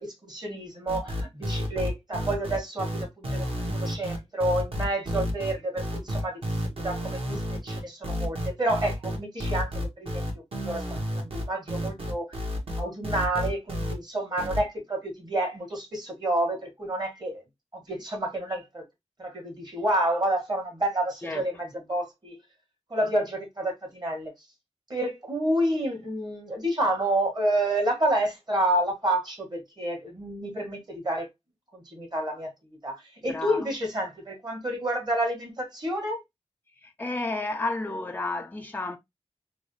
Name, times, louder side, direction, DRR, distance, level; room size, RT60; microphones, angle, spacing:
voice 1, 0.0-10.2 10.6-10.8 11.1-12.4 12.8-17.4 17.7-18.9 19.2-22.4 22.9-24.3 24.9-31.3 31.7-33.0 33.2-36.2, right 1 dB, 35° right, 1.7 m, -29 dB
sound 1, 0.9-13.9 14.4-14.6, equal, 55° right, 1.3 m, -31 dB
voice 2, 33.3-33.7 36.8-39.0, left 2 dB, 15° left, 0.5 m, -31 dB
3.8 x 2.2 x 3.1 m
wide cardioid pair, 80°, 12 cm